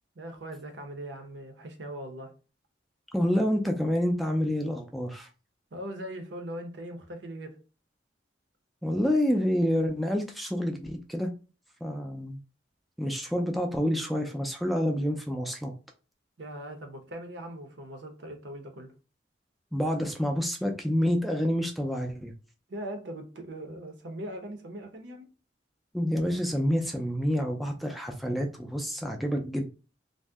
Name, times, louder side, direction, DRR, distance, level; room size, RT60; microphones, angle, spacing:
voice 1, 0.2-2.3 5.7-7.6 16.4-18.9 22.7-25.3, right 1 dB, 70° right, 0.7 m, -40 dB
voice 2, 3.1-5.3 8.8-11.3 11.8-12.4 13.0-15.7 19.7-22.3 25.9-29.7, equal, ahead, 0.3 m, -28 dB
2.6 x 2.0 x 3.4 m
head